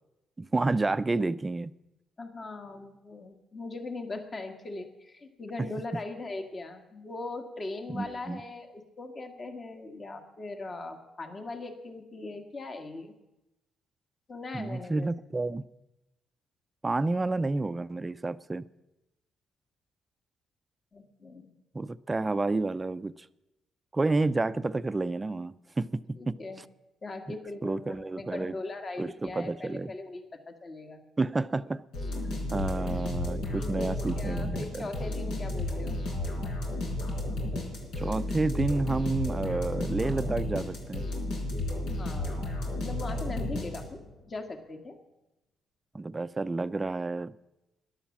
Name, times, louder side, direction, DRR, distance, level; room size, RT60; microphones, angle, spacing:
voice 1, 0.4-1.7 5.6-5.7 7.9-8.4 14.5-15.7 16.8-18.7 21.7-23.1 23.9-26.4 27.6-28.5 29.0-29.9 31.2-31.8 32.5-34.9 38.0-41.0 45.9-47.3, right 3 dB, 20° right, 0.5 m, -30 dB
voice 2, 2.2-13.1 14.3-15.1 20.9-21.5 26.2-26.6 27.0-31.0 32.2-32.8 33.5-36.0 41.9-45.0, left 2 dB, 35° left, 1.8 m, -40 dB
sound 1, 31.9-44.1, left 1 dB, 80° left, 4.5 m, -33 dB
12.5 x 11.5 x 7.3 m
cardioid pair, 90°, 0 cm